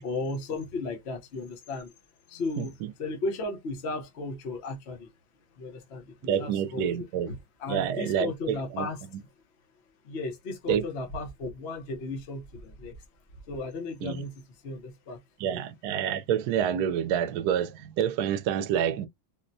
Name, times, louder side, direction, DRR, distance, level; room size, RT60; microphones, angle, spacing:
voice 1, 0.0-1.9 2.3-2.7 3.0-5.1 5.6-9.0 10.0-12.9 13.5-14.3 14.6-15.2 15.5-15.6, left 3 dB, 50° left, 0.8 m, -35 dB
voice 2, 2.6-2.9 6.3-7.3 7.7-8.9 10.7-10.8 14.0-14.2 15.4-19.1, right 9 dB, 70° right, 1.0 m, -28 dB
4.2 x 2.1 x 2.6 m
omnidirectional pair, 2.0 m